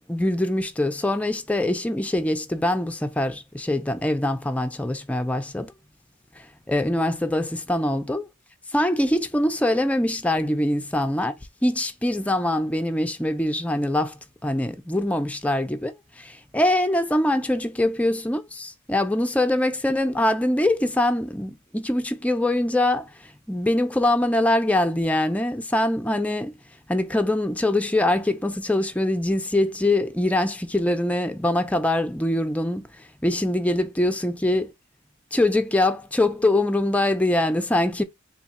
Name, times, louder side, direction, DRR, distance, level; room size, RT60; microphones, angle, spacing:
voice 1, 0.1-5.7 6.4-8.3 8.7-11.3 11.6-26.5 26.9-34.7 35.3-38.0, left 1 dB, 5° left, 0.4 m, -23 dB
2.8 x 2.3 x 4.0 m
head